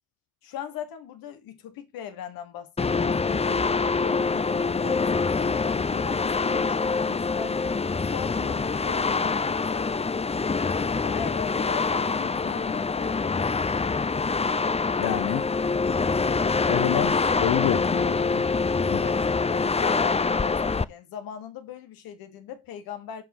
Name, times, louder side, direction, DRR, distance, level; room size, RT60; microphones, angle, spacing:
voice 1, 0.4-9.9 11.0-13.7 19.5-23.2, left 9 dB, 85° left, 1.5 m, -39 dB
sound 1, 2.8-20.8, left 4 dB, 20° left, 0.6 m, -25 dB
voice 2, 15.0-15.5 16.7-18.4 18.9-19.1, left 13 dB, 65° left, 0.8 m, -28 dB
7.7 x 4.9 x 6.0 m
supercardioid pair, 50°, 34 cm